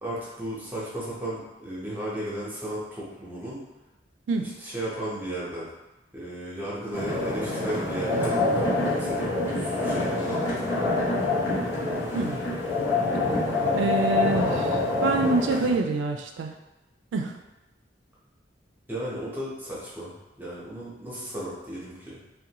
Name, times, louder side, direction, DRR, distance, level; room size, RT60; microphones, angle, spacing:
voice 1, 0.0-3.6 4.4-5.7 6.1-10.5 18.9-22.2, right 1 dB, 10° right, -8 dB, 0.7 m, -34 dB
sound 1, 6.9-15.8, left 2 dB, 75° left, 0.8 m, -26 dB
voice 2, 13.7-16.5 17.1-17.4, right 4 dB, 80° right, 5 dB, 0.3 m, -26 dB
2.5 x 2.2 x 2.8 m, 1.0 s
head